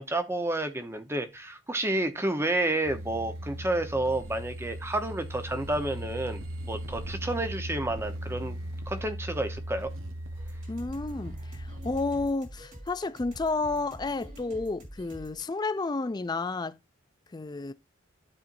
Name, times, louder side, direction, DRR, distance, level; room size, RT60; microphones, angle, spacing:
voice 1, 0.0-8.6 8.9-9.9, right 2 dB, 10° right, 0.8 m, -30 dB
sound 1, 2.8-12.3, right 1 dB, 80° right, 1.1 m, -38 dB
Boss's music for game, 10.3-15.4, equal, 40° right, 2.7 m, -46 dB
voice 2, 10.7-16.8 17.3-17.7, left 3 dB, 20° left, 0.4 m, -31 dB
12.0 x 4.3 x 2.5 m
head